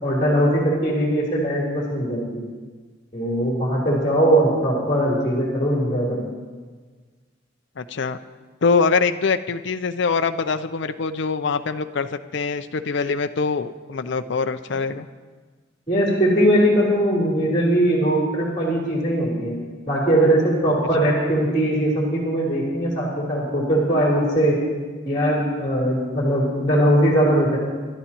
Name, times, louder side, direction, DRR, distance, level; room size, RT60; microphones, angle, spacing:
voice 1, 0.0-2.4 3.1-6.2 15.9-19.6 19.9-24.6 25.1-27.6, right 1 dB, 25° left, -5 dB, 3.5 m, -20 dB
voice 2, 7.8-8.2 8.6-15.1, left 4 dB, 60° left, 9 dB, 0.5 m, -23 dB
29.0 x 12.5 x 3.0 m, 1.4 s
head